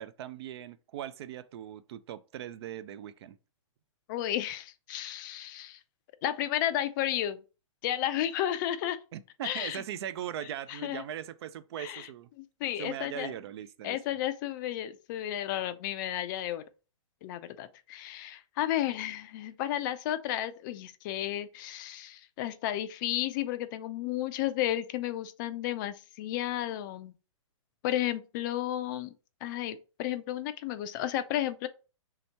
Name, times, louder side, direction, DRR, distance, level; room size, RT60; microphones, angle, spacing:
voice 1, 0.0-3.4 9.1-12.3 12.8-14.0, right 10 dB, 50° right, 0.4 m, -40 dB
voice 2, 4.1-5.8 6.2-7.4 7.8-9.0 9.4-9.8 10.7-11.0 11.8-12.1 12.4-13.3 13.8-16.6 17.2-27.1 27.8-29.1 29.4-31.7, left 12 dB, 40° left, 0.4 m, -33 dB
3.4 x 2.9 x 4.2 m
hypercardioid pair, 130°, 17 cm